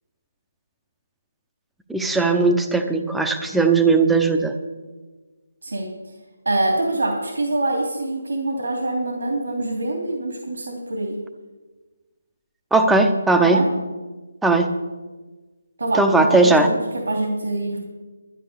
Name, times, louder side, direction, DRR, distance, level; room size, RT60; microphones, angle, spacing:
voice 1, 1.9-4.5 12.7-13.6 14.4-14.7 16.0-16.7, right 3 dB, 5° right, 5 dB, 0.8 m, -18 dB
voice 2, 6.4-11.2 13.4-13.7 15.8-16.8 17.1-17.8, right 2 dB, 80° right, 1 dB, 3.0 m, -24 dB
12.5 x 10.0 x 6.9 m, 1.3 s
figure-of-eight pair, 160°, 0 cm